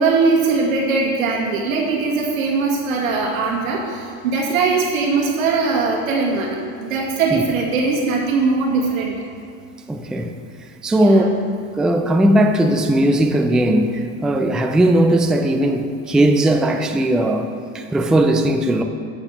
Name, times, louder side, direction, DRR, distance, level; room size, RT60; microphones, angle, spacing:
voice 1, 0.0-9.1 10.9-11.4, right 4 dB, 90° right, -3 dB, 1.9 m, -20 dB
voice 2, 9.9-10.3 10.8-11.3 11.8-17.5 17.7-18.8, right 1 dB, ahead, 5 dB, 0.3 m, -17 dB
8.1 x 4.2 x 6.6 m, 2.3 s
hypercardioid pair, 95°, 40 cm